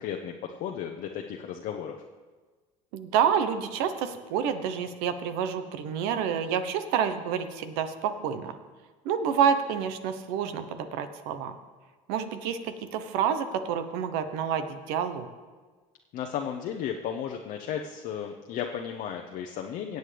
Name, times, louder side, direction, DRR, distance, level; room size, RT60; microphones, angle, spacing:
voice 1, 0.0-2.0 16.1-20.0, left 8 dB, 60° left, 1 dB, 0.8 m, -34 dB
voice 2, 2.9-8.6 9.0-11.5 12.1-15.3, right 8 dB, 75° right, 10 dB, 1.0 m, -28 dB
17.5 x 7.9 x 3.4 m, 1.4 s
supercardioid pair, 85°, 17 cm